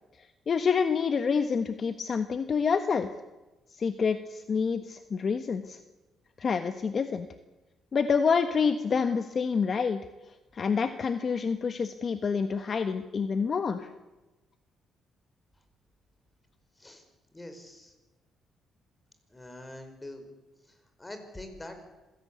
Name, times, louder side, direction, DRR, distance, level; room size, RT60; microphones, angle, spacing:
voice 1, 0.5-3.1 3.8-5.8 6.4-7.3 7.9-10.0 10.5-13.9, left 5 dB, 45° left, 9 dB, 1.3 m, -27 dB
voice 2, 17.3-17.9 19.3-20.3 20.6-21.9, left 1 dB, 15° left, 7 dB, 5.2 m, -44 dB
26.5 x 17.0 x 8.5 m, 1.1 s
cardioid pair, 90°, 0 cm